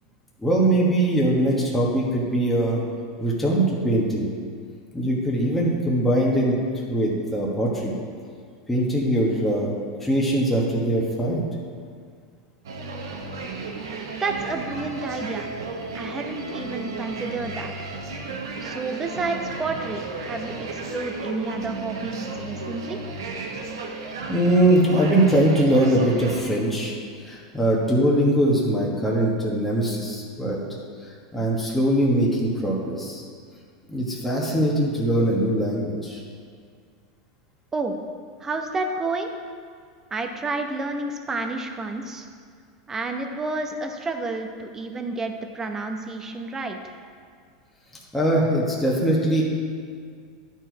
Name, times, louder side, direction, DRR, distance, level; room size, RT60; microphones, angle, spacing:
voice 1, 0.4-2.8 3.2-4.3 4.9-6.5 6.9-7.9 8.7-9.7 10.0-11.4 24.3-26.9 27.2-30.6 31.3-33.2 33.9-36.2 48.1-49.4, right 1 dB, 5° left, -4 dB, 1.4 m, -21 dB
sound 1, 12.6-26.4, right 3 dB, 90° right, 1.1 m, -34 dB
voice 2, 14.2-15.5 15.9-17.7 18.6-23.0 37.7-38.0 38.4-39.3 40.1-42.3 42.9-46.9, right 3 dB, 20° right, 4 dB, 0.8 m, -30 dB
11.0 x 4.6 x 4.6 m, 2.1 s
supercardioid pair, 115°, 2 cm